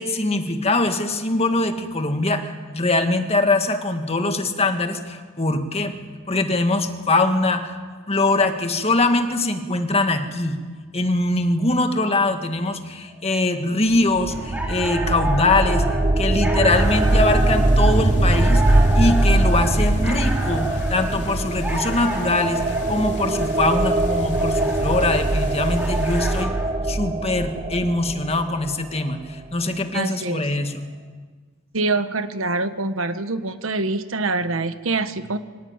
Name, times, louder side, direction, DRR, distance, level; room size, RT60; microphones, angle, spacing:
voice 1, 0.0-5.9 6.3-7.8 8.1-10.6 10.9-15.9 16.2-26.5 26.9-30.9, left 2 dB, 30° left, 6 dB, 1.8 m, -22 dB
sound 1, 13.9-28.8, right 2 dB, 25° right, 0.6 m, -21 dB
sound 2, 14.3-26.7, right 1 dB, 10° right, 3.5 m, -32 dB
sound 3, 16.7-26.4, left 1 dB, 55° left, 3.7 m, -38 dB
voice 2, 29.9-30.5 31.7-35.4, right 3 dB, 75° right, 10 dB, 1.3 m, -25 dB
24.5 x 18.5 x 8.9 m, 1.5 s
head